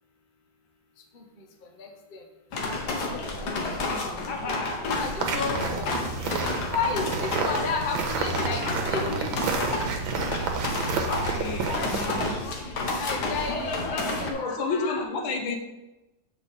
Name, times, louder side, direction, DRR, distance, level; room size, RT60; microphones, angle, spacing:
voice 1, 1.8-2.2 3.1-3.8 4.5-4.6 4.8-6.0 6.7-9.5 11.0-11.2 11.6-11.9 12.9-15.0, left 4 dB, 40° left, 2 dB, 0.8 m, -33 dB
sound 1, 2.5-14.3, left 2 dB, 60° left, 1.5 m, -31 dB
voice 2, 3.7-4.4 5.3-5.8 7.8-7.9 11.3-12.4 14.3-15.6, left 4 dB, 80° left, 3 dB, 1.7 m, -31 dB
sound 2, 5.2-12.3, right 4 dB, 85° right, 1.7 m, -30 dB
7.0 x 4.8 x 4.1 m, 1.0 s
omnidirectional pair, 2.1 m